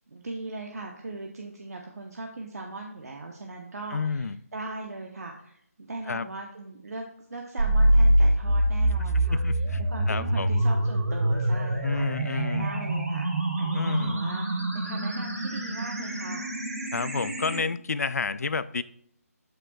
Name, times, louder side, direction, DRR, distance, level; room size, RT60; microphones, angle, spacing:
voice 1, 0.1-7.0 7.3-13.3 13.6-16.5, right 2 dB, 70° right, 1 dB, 1.0 m, -39 dB
voice 2, 3.9-4.4 6.1-6.3 9.1-9.8 10.1-10.6 11.8-12.7 13.7-14.2 16.9-18.8, left 4 dB, 70° left, 16 dB, 0.4 m, -30 dB
sound 1, 7.6-17.6, right 1 dB, 90° right, 3.5 m, -25 dB
12.5 x 5.8 x 2.4 m, 0.70 s
figure-of-eight pair, 165°, 9 cm